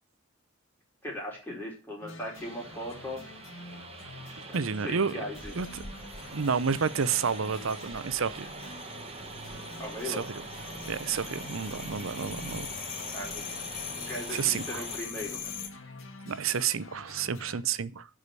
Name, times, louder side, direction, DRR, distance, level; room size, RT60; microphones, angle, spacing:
voice 1, 1.0-3.2 4.5-5.5 9.8-10.2 13.1-13.5 13.9-15.6, left 1 dB, 10° left, 4.7 m, -38 dB
sound 1, 2.0-17.6, left 2 dB, 75° left, 2.0 m, -48 dB
sound 2, 2.3-15.0, right 4 dB, 30° right, 1.3 m, -44 dB
voice 2, 4.5-5.1 5.6-5.7 6.3-8.4 10.1-10.4 10.9-12.7 14.3-14.8 16.3-18.1, right 6 dB, 80° right, 0.7 m, -30 dB
sound 3, 5.4-15.7, left 6 dB, 45° left, 1.6 m, -42 dB
12.0 x 5.0 x 8.2 m
head